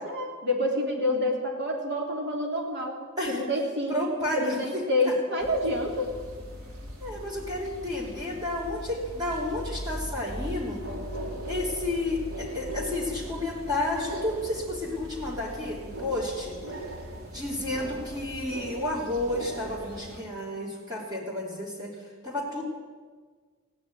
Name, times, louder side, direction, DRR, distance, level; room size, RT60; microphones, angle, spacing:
voice 1, 0.0-3.0 3.3-6.1, left 1 dB, 55° right, 0 dB, 3.3 m, -28 dB
voice 2, 3.9-5.5 7.0-10.8 11.5-16.6 17.3-22.6, left 1 dB, 20° right, -5 dB, 3.2 m, -31 dB
sound 1, 5.4-20.2, equal, 85° right, 2.8 m, -39 dB
15.5 x 9.6 x 9.2 m, 1.5 s
head